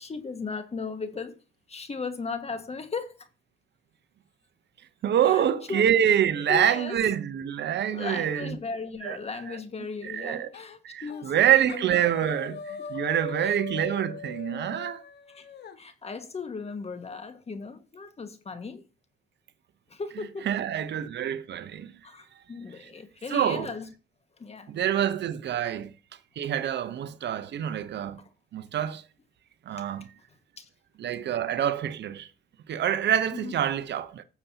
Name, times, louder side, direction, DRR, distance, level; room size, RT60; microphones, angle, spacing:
voice 1, 0.0-1.4 1.7-3.3 5.2-5.4 5.7-5.9 6.5-7.0 7.9-11.9 13.4-13.6 15.3-15.5 15.8-18.8 19.9-20.5 22.0-23.9 24.4-24.8 30.6-30.7 33.3-33.6, left 4 dB, 30° left, 1.7 m, -37 dB
voice 2, 5.0-8.5 9.0-9.2 9.5-9.6 10.1-10.5 10.8-15.0 20.5-21.9 23.3-23.7 24.7-25.9 26.4-28.2 28.5-29.0 29.7-30.0 31.0-32.3 32.7-34.2, right 10 dB, 55° right, 0.8 m, -26 dB
sound 1, 10.5-10.8 11.1-11.4 11.7-15.8, left 6 dB, 55° left, 1.4 m, -40 dB
16.0 x 6.9 x 2.8 m
supercardioid pair, 75°, 21 cm